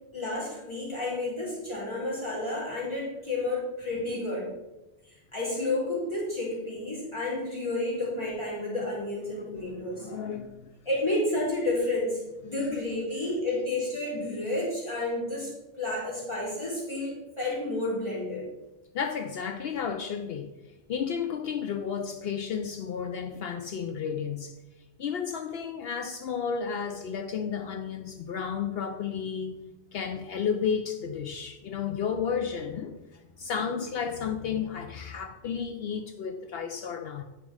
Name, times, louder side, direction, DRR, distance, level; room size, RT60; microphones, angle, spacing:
voice 1, 0.1-4.6 5.3-10.1 10.8-18.5, left 2 dB, 25° left, -8 dB, 2.9 m, -31 dB
voice 2, 9.3-9.6 9.9-10.7 18.9-20.5 20.9-24.6 25.0-29.6 29.9-37.2, left 7 dB, 65° left, 7 dB, 0.8 m, -32 dB
10.0 x 5.1 x 4.8 m, 1.0 s
omnidirectional pair, 1.1 m